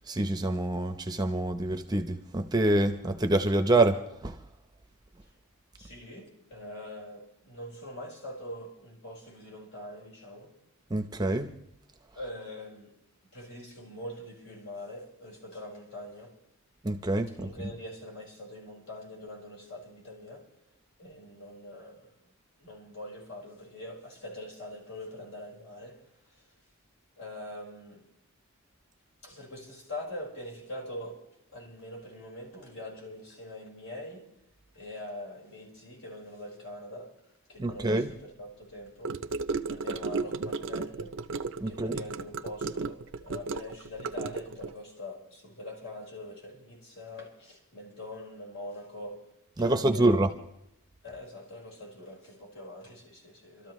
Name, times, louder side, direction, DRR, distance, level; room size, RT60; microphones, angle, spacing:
voice 1, 0.0-4.4 10.9-11.5 16.8-17.7 37.6-38.1 41.6-42.0 49.6-50.3, right 2 dB, 20° right, 0.7 m, -26 dB
voice 2, 5.8-10.5 12.2-13.0 13.3-16.4 17.4-20.5 21.0-22.1 22.6-26.0 27.1-28.1 29.2-31.3 31.5-34.3 34.7-37.2 37.5-41.2 41.7-49.3 49.6-50.1 51.0-53.7, left 1 dB, 65° left, 4.6 m, -43 dB
Gurgling / Car passing by / Sink (filling or washing), 39.0-44.7, right 4 dB, 55° right, 0.5 m, -34 dB
28.0 x 13.0 x 3.1 m
head